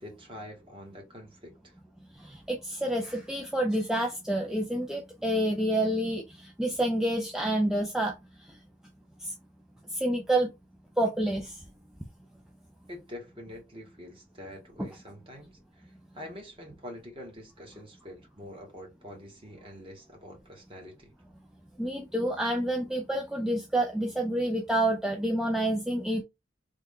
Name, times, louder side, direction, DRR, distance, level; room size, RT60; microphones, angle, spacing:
voice 1, 0.0-1.7 12.9-21.1, left 1 dB, 25° right, 1.0 m, -46 dB
voice 2, 2.2-8.1 9.2-9.3 9.9-10.5 11.0-11.6 14.8-14.9 21.8-26.2, right 1 dB, 5° right, 0.3 m, -28 dB
3.4 x 2.1 x 3.5 m
head